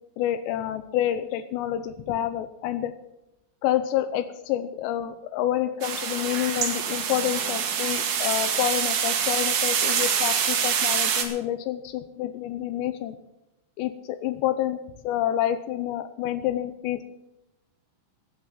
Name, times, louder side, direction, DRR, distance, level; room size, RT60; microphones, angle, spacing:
voice 1, 0.2-2.9 3.6-13.1 13.8-17.0, left 12 dB, 90° left, 11 dB, 2.5 m, -28 dB
sound 1, 5.8-11.2, right 7 dB, 65° right, 2.0 m, -25 dB
16.5 x 9.8 x 5.7 m, 0.88 s
omnidirectional pair, 5.9 m